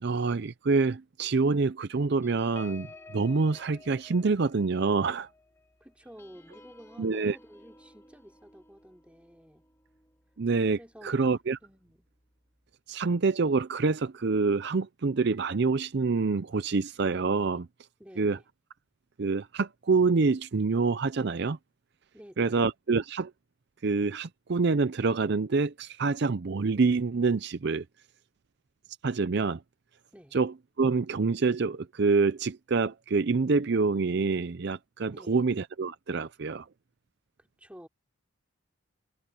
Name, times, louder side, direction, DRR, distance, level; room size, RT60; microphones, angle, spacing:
voice 1, 0.0-5.3 7.0-7.4 10.4-11.6 12.9-17.7 18.2-18.4 19.2-21.6 22.4-23.3 23.8-27.8 29.0-29.6 30.3-36.7, right 4 dB, 50° right, 0.5 m, -26 dB
sound 1, 2.2-11.1 11.6-11.8 12.1-12.4, left 3 dB, 15° left, 1.7 m, -54 dB
voice 2, 5.8-9.6 10.8-11.2 11.6-12.1 18.0-18.4 22.1-22.7 30.1-30.4 35.1-35.5 37.4-37.9, equal, 5° right, 4.9 m, -51 dB
head